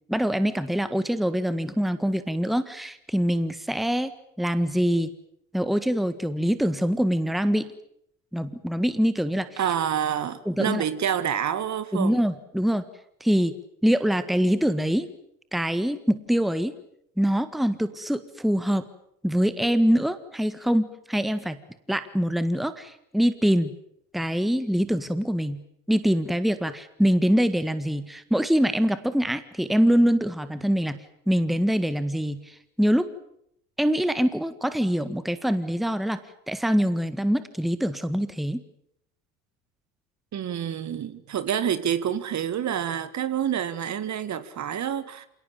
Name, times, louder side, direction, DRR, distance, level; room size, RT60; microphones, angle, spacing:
voice 1, 0.1-4.1 4.4-5.1 5.5-7.7 8.3-9.6 10.4-10.8 11.9-12.9 13.2-13.6 13.8-15.1 15.5-16.7 17.2-18.9 19.2-21.6 21.9-23.7 24.1-25.6 25.9-31.0 31.3-33.1 33.8-36.2 36.5-38.6, equal, ahead, 12 dB, 1.6 m, -24 dB
voice 2, 9.6-12.2 40.3-45.3, right 9 dB, 45° right, 13 dB, 2.0 m, -28 dB
27.5 x 18.5 x 9.0 m, 0.72 s
hypercardioid pair, 65°, 40 cm